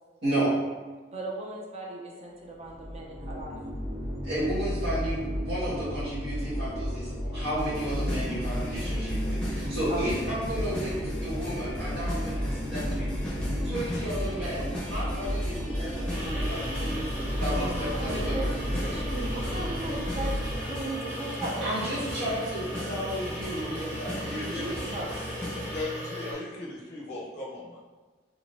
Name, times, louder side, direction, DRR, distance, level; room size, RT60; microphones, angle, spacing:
voice 1, 0.2-0.6 4.2-13.1 13.6-17.1 17.3-18.4 21.6-24.7, right 1 dB, 75° right, -14 dB, 1.4 m, -33 dB
voice 2, 1.1-3.6 9.9-10.0 17.6-20.4 20.6-21.7 23.9-24.0 24.5-25.5, right 2 dB, 35° right, -1 dB, 0.5 m, -37 dB
sound 1, 2.5-20.6, equal, 55° right, 1.4 m, -33 dB
sound 2, 7.6-25.8, equal, 5° left, 0.7 m, -38 dB
sound 3, 16.1-26.3, equal, 10° right, 1.1 m, -38 dB
voice 3, 24.1-24.6 25.1-25.2 25.7-27.8, left 2 dB, 40° left, -5 dB, 0.5 m, -37 dB
3.7 x 3.3 x 2.5 m, 1.3 s
head